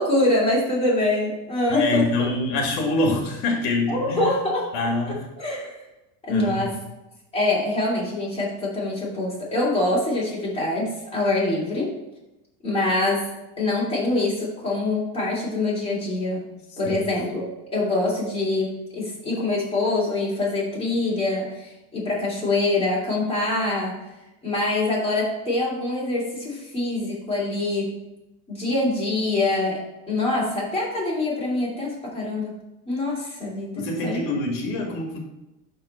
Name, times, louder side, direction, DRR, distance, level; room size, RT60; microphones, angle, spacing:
voice 1, 0.0-2.0 3.9-4.7 5.4-5.8 6.3-6.8 7.3-12.0 12.6-16.4 16.8-17.5 17.7-24.0 24.4-27.9 28.5-32.5 32.9-34.2, left 2 dB, 10° left, -7 dB, 2.9 m, -24 dB
voice 2, 1.7-4.3 4.7-5.2 6.3-6.7 16.8-17.0 33.8-35.2, left 2 dB, 75° left, 1 dB, 1.8 m, -25 dB
11.5 x 3.9 x 4.3 m, 0.97 s
cardioid pair, 155°, 49 cm